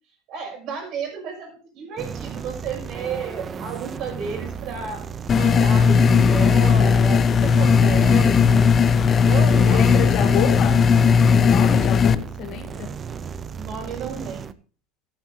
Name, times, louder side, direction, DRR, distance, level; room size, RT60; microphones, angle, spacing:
voice 1, 0.3-5.0 5.3-8.7 9.2-10.5 13.5-14.5, right 6 dB, 45° right, 6.2 m, -32 dB
sound 1, 2.0-14.5, right 6 dB, 25° right, 0.6 m, -35 dB
sound 2, 5.3-12.1, left 6 dB, 25° left, 0.5 m, -16 dB
voice 2, 9.7-10.8 11.3-13.0, left 9 dB, 45° left, 1.7 m, -29 dB
13.0 x 12.0 x 2.8 m
supercardioid pair, 150°, 0 cm